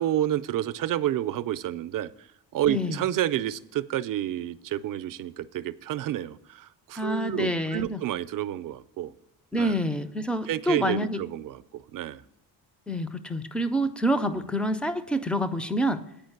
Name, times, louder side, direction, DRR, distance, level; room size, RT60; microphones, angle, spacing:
voice 1, 0.0-2.3 2.5-9.1 9.6-9.8 10.5-12.2 14.3-14.4, right 12 dB, 55° right, 15 dB, 0.5 m, -30 dB
voice 2, 2.7-3.0 7.0-8.0 9.5-11.2 12.9-16.0, equal, 5° left, 12 dB, 0.4 m, -27 dB
8.9 x 5.1 x 7.8 m, 0.82 s
cardioid pair, 135°, 41 cm